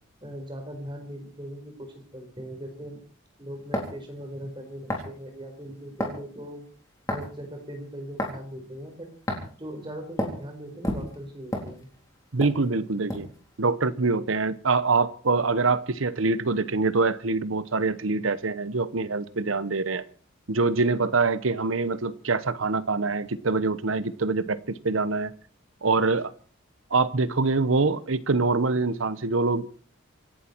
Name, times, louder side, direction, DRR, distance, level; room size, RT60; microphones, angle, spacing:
voice 1, 0.2-3.0 3.4-6.6 7.1-9.1 9.3-11.9, equal, 25° right, 4 dB, 4.5 m, -40 dB
sound 1, 3.7-4.0 4.9-5.1 6.0-6.2 7.1-7.4 8.2-8.4 9.3-9.5 10.2-10.4 10.8-12.1 12.4-12.6 13.1-13.4, left 1 dB, 15° left, 3.8 m, -30 dB
voice 2, 12.3-13.3 13.6-20.0 20.5-25.3 25.8-26.3 26.9-29.8, right 3 dB, 75° right, 15 dB, 1.0 m, -25 dB
26.0 x 11.5 x 4.6 m, 0.43 s
head